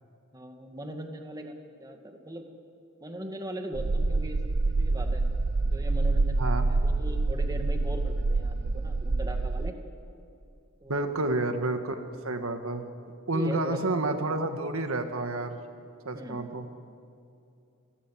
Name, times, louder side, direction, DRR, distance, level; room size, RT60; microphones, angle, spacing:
voice 1, 0.3-2.5 3.0-5.2 5.6-9.8 10.8-11.3 13.3-14.2 16.1-16.4, right 1 dB, 20° right, 4 dB, 2.2 m, -40 dB
sound 1, 3.7-9.7, right 3 dB, 50° right, 0.6 m, -26 dB
voice 2, 10.9-12.9 13.3-15.6 16.1-16.7, right 2 dB, 75° right, 6 dB, 1.8 m, -30 dB
28.5 x 20.5 x 7.7 m, 2.5 s
head